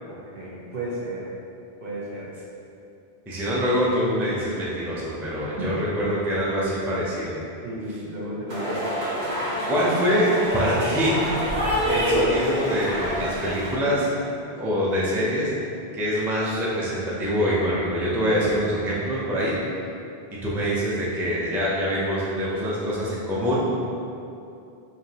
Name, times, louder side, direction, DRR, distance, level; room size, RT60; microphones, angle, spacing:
voice 1, 0.3-1.3 1.8-2.3 5.4-5.8 7.6-8.8, right 1 dB, 60° right, -6 dB, 1.0 m, -33 dB
voice 2, 3.3-7.3 7.9-8.0 9.7-11.2 11.9-14.1 14.6-15.5 15.9-19.6 20.4-23.6, equal, 5° right, -7 dB, 0.4 m, -25 dB
sound 1, 8.5-13.8, equal, 85° right, 1.2 m, -26 dB
4.9 x 2.8 x 2.8 m, 2.6 s
omnidirectional pair, 1.1 m